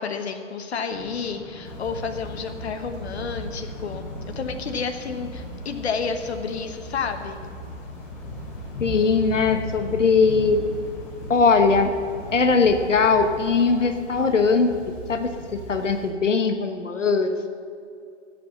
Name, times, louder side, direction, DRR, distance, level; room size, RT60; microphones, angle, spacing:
voice 1, 0.0-7.4, left 5 dB, 60° left, 6 dB, 1.2 m, -30 dB
sound 1, 0.9-13.7, left 3 dB, ahead, 0.6 m, -46 dB
Thunder / Rain, 1.6-16.1, equal, 25° left, 3.0 m, -37 dB
voice 2, 8.8-10.6 11.3-11.9 12.3-14.7 15.1-17.5, left 4 dB, 75° left, 6 dB, 1.2 m, -20 dB
14.5 x 8.5 x 7.1 m, 2.4 s
figure-of-eight pair, 135°, 37 cm